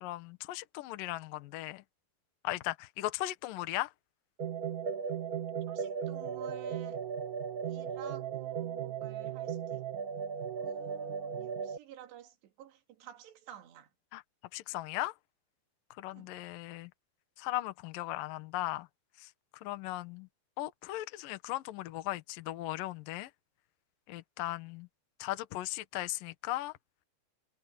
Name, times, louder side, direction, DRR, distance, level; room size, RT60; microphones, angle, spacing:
voice 1, 0.0-1.8 2.4-3.9 14.1-14.2 14.5-15.1 16.0-16.9 17.4-18.9 19.6-20.3 20.6-23.3 24.1-24.9 25.2-26.7, left 16 dB, 70° left, 2.4 m, -37 dB
sound 1, 4.4-11.8, right 7 dB, 45° right, 1.1 m, -37 dB
voice 2, 5.7-7.0 7.7-9.8 10.6-13.9 16.1-16.3, right 11 dB, 85° right, 4.3 m, -51 dB
omnidirectional pair, 4.8 m